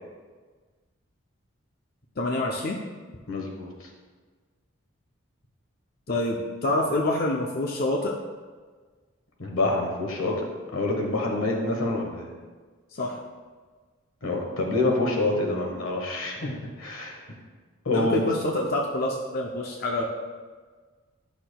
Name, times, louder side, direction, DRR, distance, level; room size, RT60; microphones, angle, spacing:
voice 1, 2.2-2.8 6.1-8.1 11.3-11.4 12.9-13.2 17.9-20.0, left 1 dB, 45° left, 0 dB, 0.5 m, -27 dB
voice 2, 3.3-3.7 9.4-12.3 14.2-17.2 17.8-18.3, left 2 dB, 85° left, 0 dB, 1.3 m, -27 dB
10.0 x 5.9 x 2.2 m, 1.4 s
head